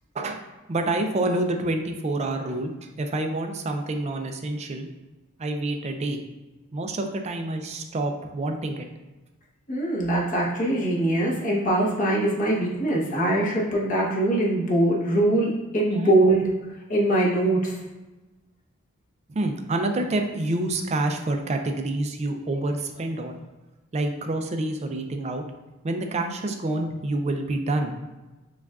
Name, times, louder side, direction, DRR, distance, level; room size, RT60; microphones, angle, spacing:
voice 1, 0.7-4.9 5.4-6.2 6.7-8.9 15.9-16.1 19.3-23.4 23.9-25.4 25.8-28.0, right 2 dB, 30° right, 5 dB, 0.4 m, -27 dB
voice 2, 9.7-16.4 16.9-17.7, right 1 dB, 40° left, -5 dB, 1.0 m, -22 dB
6.9 x 2.4 x 2.4 m, 1.1 s
head